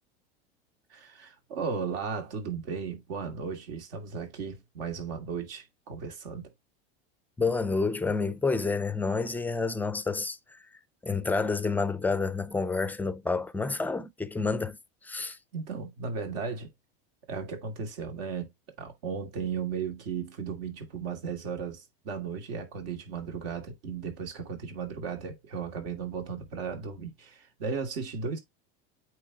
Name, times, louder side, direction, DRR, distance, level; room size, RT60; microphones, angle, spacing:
voice 1, 0.9-6.5 15.2-16.7 17.3-18.5 18.8-28.4, right 6 dB, 70° right, 2.5 m, -35 dB
voice 2, 7.4-10.6 11.0-14.8 15.0-15.4, left 4 dB, 5° left, 0.5 m, -29 dB
8.6 x 3.3 x 4.0 m
supercardioid pair, 130°, 30 cm